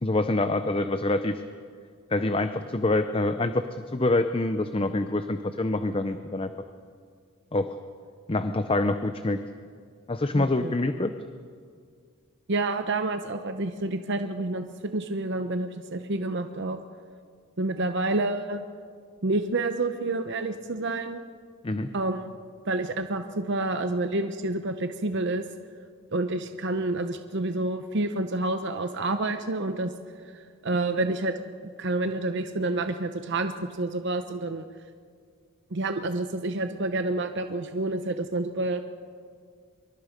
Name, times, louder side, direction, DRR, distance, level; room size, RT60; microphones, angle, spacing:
voice 1, 0.0-1.4 2.1-3.7 3.9-6.5 7.5-7.7 8.3-9.4 10.1-11.1 21.6-21.9, left 2 dB, 25° left, 9 dB, 0.6 m, -26 dB
voice 2, 10.3-10.8 12.5-16.8 17.6-18.6 19.2-21.2 21.9-22.3 22.7-25.4 26.1-29.9 30.3-31.3 31.8-34.7 35.7-38.8, right 2 dB, 50° right, 8 dB, 0.8 m, -28 dB
25.0 x 23.0 x 5.2 m, 2.1 s
head